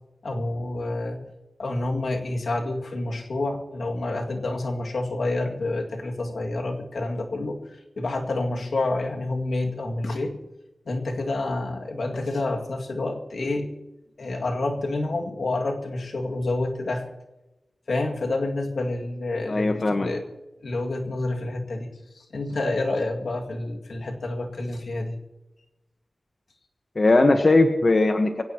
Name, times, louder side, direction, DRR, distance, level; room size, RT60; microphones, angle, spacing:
voice 1, 0.2-1.3 1.6-10.4 10.9-13.7 14.2-17.1 17.9-20.2 20.6-25.2, left 2 dB, 80° left, 1 dB, 2.2 m, -28 dB
voice 2, 19.5-20.1 26.9-28.4, left 2 dB, 45° left, 5 dB, 1.2 m, -19 dB
24.5 x 17.0 x 3.0 m, 1.0 s
wide cardioid pair, 95°, 0 cm